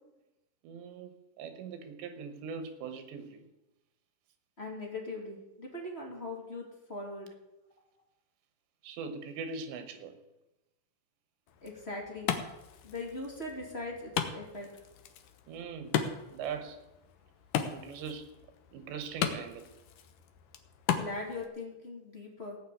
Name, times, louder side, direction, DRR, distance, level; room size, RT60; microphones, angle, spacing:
voice 1, 0.6-3.5 8.8-10.2 15.5-16.0 16.3-16.8 17.7-18.4 18.7-19.8, right 5 dB, 85° right, 3.5 m, -41 dB
voice 2, 4.6-7.3 11.6-12.3 12.8-14.7 20.9-22.6, left 2 dB, 20° left, 2.0 m, -40 dB
Wood, 11.5-21.5, left 8 dB, 70° left, 2.1 m, -37 dB
17.5 x 5.9 x 8.4 m
omnidirectional pair, 5.0 m